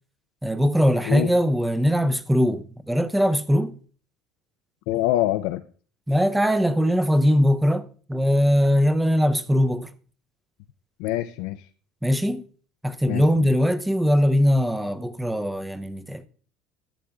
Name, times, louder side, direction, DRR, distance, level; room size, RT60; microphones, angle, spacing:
voice 1, 0.4-3.7 6.1-9.9 12.0-12.5 12.8-16.2, equal, 5° right, 0.5 m, -21 dB
voice 2, 4.9-5.6 11.0-11.7 13.1-13.5, left 15 dB, 80° left, 0.4 m, -25 dB
13.0 x 7.5 x 2.3 m
cardioid pair, 125°, 0 cm